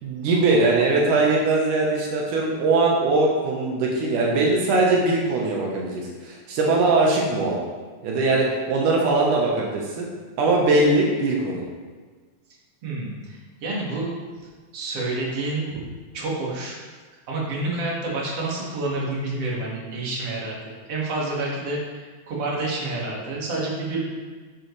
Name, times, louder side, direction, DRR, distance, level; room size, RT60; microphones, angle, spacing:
voice 1, 0.0-7.6 8.0-10.1 10.4-11.6, right 3 dB, 85° right, -2 dB, 2.8 m, -21 dB
voice 2, 12.8-14.1 14.7-15.8 16.1-16.8 17.3-20.6 20.9-24.1, right 2 dB, 55° right, -5 dB, 3.0 m, -28 dB
10.5 x 7.7 x 3.3 m, 1.4 s
omnidirectional pair, 3.5 m